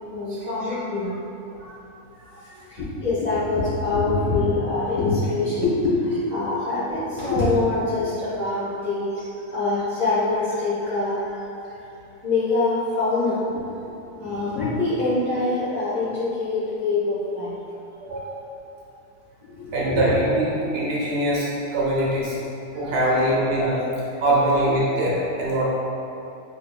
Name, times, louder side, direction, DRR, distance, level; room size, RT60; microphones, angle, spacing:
voice 1, 0.1-1.2 1.5-1.6 2.4-9.2 9.5-11.4 12.2-13.6 14.2-17.5 19.4-20.1 22.8-22.9, left 3 dB, 30° left, -12 dB, 1.1 m, -24 dB
voice 2, 18.0-18.3 19.7-22.4 22.7-23.8 24.2-25.6, right 1 dB, 75° right, -5 dB, 1.3 m, -22 dB
5.2 x 3.1 x 2.2 m, 2.8 s
omnidirectional pair, 1.7 m